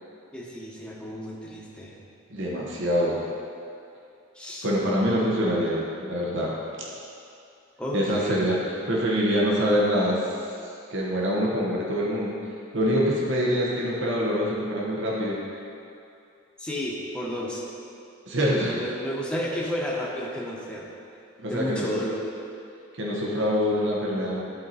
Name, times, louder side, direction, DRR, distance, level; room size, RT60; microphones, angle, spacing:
voice 1, 0.3-2.0 4.3-4.7 7.8-8.7 16.6-17.6 18.5-20.9 21.5-22.2, equal, 5° left, -5 dB, 0.9 m, -32 dB
voice 2, 2.3-3.2 4.6-6.5 7.9-8.6 8.9-10.3 10.9-12.4 12.7-15.4 18.2-18.7 21.4-21.8 23.0-24.4, equal, 65° right, -4 dB, 1.1 m, -25 dB
11.0 x 4.5 x 4.1 m, 2.5 s
head